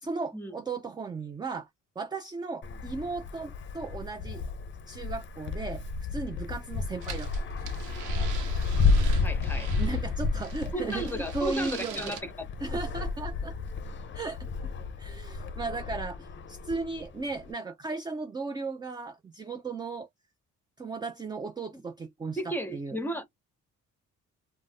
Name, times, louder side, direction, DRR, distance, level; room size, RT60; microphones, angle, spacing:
voice 1, 0.0-1.7 2.0-4.4 4.9-5.8 6.1-7.7 9.8-12.2 12.6-13.5 14.1-14.5 15.0-20.1 20.8-23.0, right 4 dB, 15° right, 0.3 m, -36 dB
Wind, 2.6-17.5, left 4 dB, 40° left, 0.5 m, -31 dB
sound 1, 7.0-10.0 10.4-12.2, right 7 dB, 85° right, 0.8 m, -43 dB
voice 2, 9.2-9.8 10.7-12.8 21.7-21.8 22.4-23.3, equal, 5° left, 0.8 m, -34 dB
2.5 x 2.1 x 3.3 m
cardioid pair, 90°, 30 cm